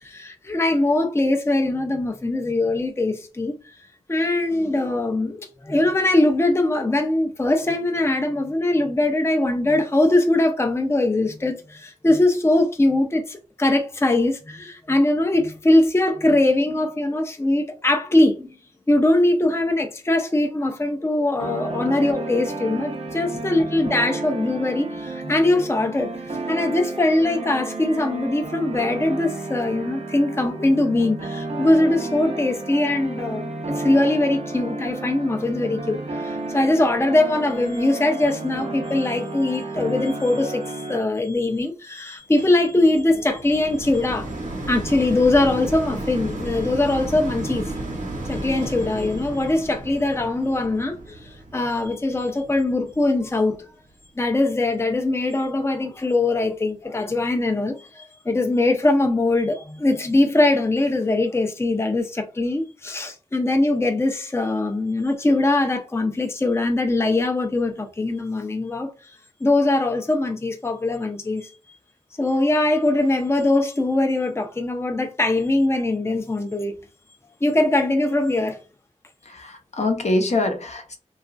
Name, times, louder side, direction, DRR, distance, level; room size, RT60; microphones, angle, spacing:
voice 1, 0.0-3.5 4.1-18.5 18.9-44.3 44.7-47.7 48.3-53.6 54.2-68.9 69.4-71.5 72.2-76.8 77.4-78.6, left 2 dB, 20° left, 0.5 m, -21 dB
sound 1, 21.4-41.0, right 2 dB, 55° right, 0.7 m, -32 dB
sound 2, 42.4-53.6 54.2-54.3, right 1 dB, 75° right, 0.9 m, -33 dB
voice 2, 79.2-81.0, left 2 dB, 60° left, 0.6 m, -24 dB
2.9 x 2.4 x 2.5 m
cardioid pair, 45°, 13 cm